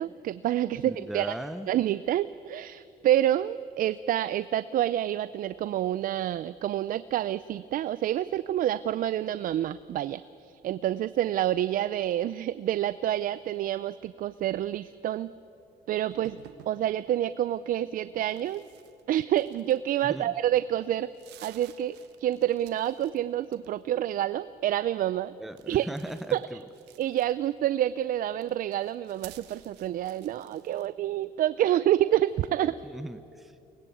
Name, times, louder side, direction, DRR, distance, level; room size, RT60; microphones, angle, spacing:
voice 1, 0.0-1.3 1.7-15.3 15.9-16.4 16.7-18.6 19.1-21.1 21.4-25.3 25.7-25.9 26.3-26.4 27.0-32.8, right 12 dB, 55° right, 15 dB, 0.5 m, -28 dB
voice 2, 0.7-1.7 20.0-20.3 25.4-26.6 32.8-33.6, right 1 dB, ahead, 10 dB, 0.7 m, -38 dB
sound 1, 16.1-16.8 18.2-20.2 20.6-20.7 21.0-23.2 23.4-24.0 25.5-27.6 28.3-30.9, right 13 dB, 85° right, 1.3 m, -53 dB
23.5 x 19.5 x 8.6 m, 2.8 s
cardioid pair, 110°, 17 cm